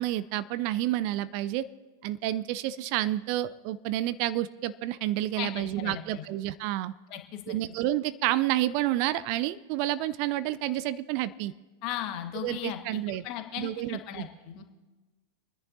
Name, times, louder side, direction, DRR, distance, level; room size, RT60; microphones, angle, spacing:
voice 1, 0.0-1.6 2.0-6.9 7.5-11.5 12.4-13.2 13.6-14.3, right 14 dB, 45° right, 17 dB, 0.4 m, -29 dB
voice 2, 5.3-6.2 7.1-7.6 11.8-14.6, left 11 dB, 40° left, 5 dB, 1.5 m, -37 dB
26.5 x 10.5 x 2.7 m, 1.2 s
figure-of-eight pair, 90°, 0 cm